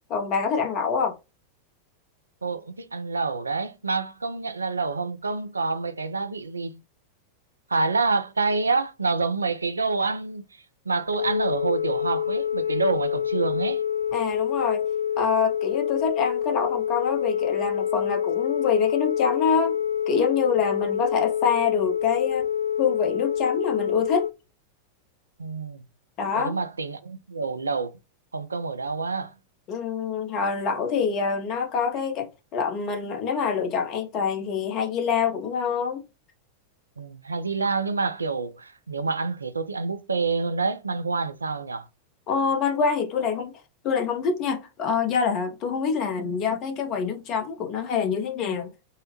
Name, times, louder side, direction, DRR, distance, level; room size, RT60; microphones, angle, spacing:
voice 1, 0.1-1.1 14.1-14.8 15.2-19.8 20.1-22.5 22.8-24.3 26.2-26.5 29.7-36.0 42.3-43.5 43.8-48.7, left 6 dB, 35° left, 0.8 m, -26 dB
voice 2, 2.4-6.8 7.7-13.8 25.4-25.8 26.3-28.0 28.3-29.3 37.0-41.9, right 4 dB, 75° right, 0.4 m, -27 dB
Telephone, 11.1-24.3, left 9 dB, 70° left, 0.3 m, -27 dB
3.7 x 2.1 x 2.8 m
figure-of-eight pair, 90°, 0 cm